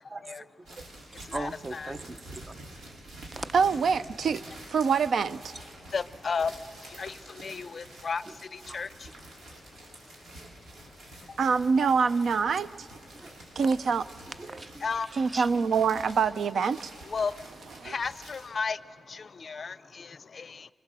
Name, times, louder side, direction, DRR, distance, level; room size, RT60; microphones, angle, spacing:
voice 1, 0.1-0.5 0.8-0.9 1.2-2.5 3.4-3.5 13.1-13.3 14.4-14.8 15.3-15.5, right 2 dB, 25° right, 13 dB, 0.7 m, -39 dB
sound 1, 0.6-18.5, right 1 dB, 90° right, 5.5 m, -48 dB
voice 2, 1.3-1.9 5.9-6.5 6.9-8.2 8.5-9.1 14.8-15.1 17.0-17.3 17.8-18.8 19.1-20.7, left 5 dB, 40° left, 16 dB, 0.5 m, -33 dB
voice 3, 3.5-4.4 4.7-5.5 11.4-12.9 13.6-14.1 15.2-16.9 17.8-17.9, right 5 dB, 65° right, 15 dB, 0.6 m, -25 dB
26.0 x 24.0 x 7.5 m, 2.1 s
wide cardioid pair, 140°, 0 cm